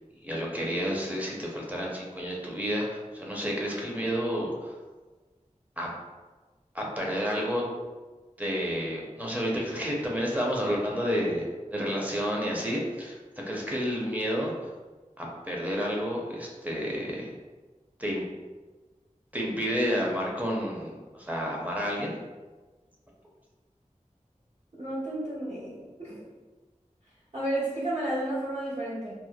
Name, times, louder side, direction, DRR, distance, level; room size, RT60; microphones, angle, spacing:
voice 1, 0.2-4.7 5.8-5.9 6.7-7.6 8.4-13.2 13.5-14.7 15.2-17.3 18.0-18.2 19.3-22.1, equal, 10° right, -3 dB, 0.6 m, -30 dB
voice 2, 24.8-26.3 27.3-29.1, right 1 dB, 55° right, -8 dB, 1.1 m, -32 dB
3.0 x 2.0 x 2.2 m, 1.3 s
wide cardioid pair, 40°, 13 cm